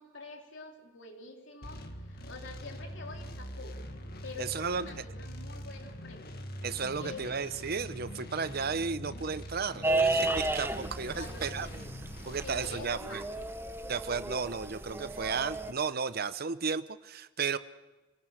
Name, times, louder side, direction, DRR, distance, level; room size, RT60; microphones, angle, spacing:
voice 1, 0.0-3.8 4.2-6.4 6.9-7.4 11.1-11.9 12.4-13.5, left 3 dB, 70° left, 2 dB, 3.3 m, -47 dB
sound 1, 1.6-12.8, equal, 55° left, 1.9 m, -43 dB
voice 2, 4.4-4.9 6.6-11.7 12.2-13.2 13.9-17.6, right 5 dB, 50° right, 13 dB, 0.8 m, -34 dB
sound 2, 9.8-15.7, right 2 dB, 10° right, 0.8 m, -33 dB
27.0 x 19.0 x 6.4 m, 1.2 s
head